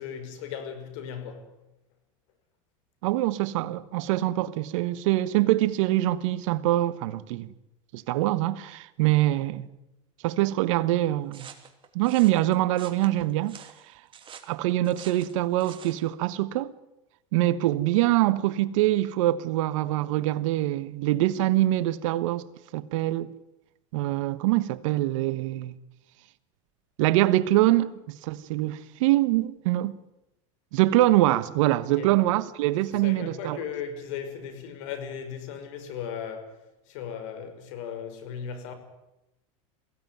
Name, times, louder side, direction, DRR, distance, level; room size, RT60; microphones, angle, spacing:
voice 1, 0.0-1.5 32.0-32.1 32.7-36.6 36.9-38.7, left 7 dB, 70° left, 5.2 m, -37 dB
voice 2, 3.0-7.5 7.9-9.7 10.2-11.5 11.9-13.7 14.5-16.7 17.3-22.5 22.7-23.3 23.9-25.8 27.0-30.0 30.7-33.6, right 15 dB, 75° right, 1.3 m, -24 dB
sound 1, 11.3-16.0, right 8 dB, 30° right, 2.9 m, -47 dB
22.5 x 16.5 x 9.4 m
supercardioid pair, 115°, 17 cm